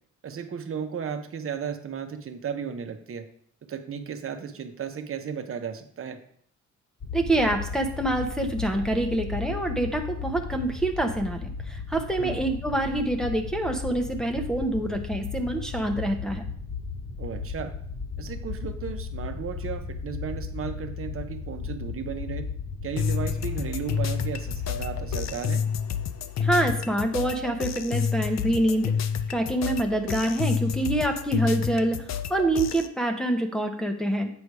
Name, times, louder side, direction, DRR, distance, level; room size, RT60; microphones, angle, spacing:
voice 1, 0.2-3.3 3.7-6.2 12.2-12.4 17.2-17.7 18.2-22.4 22.8-25.6, right 7 dB, 45° right, 7 dB, 1.1 m, -34 dB
sound 1, 7.0-25.4, left 5 dB, 45° left, 1.6 m, -35 dB
voice 2, 7.1-16.4 26.4-28.9 29.3-32.0 32.3-34.3, right 1 dB, ahead, 2 dB, 1.0 m, -26 dB
sound 2, 23.0-32.9, left 7 dB, 60° left, 0.7 m, -29 dB
8.2 x 5.1 x 4.8 m, 0.62 s
cardioid pair, 90°, 30 cm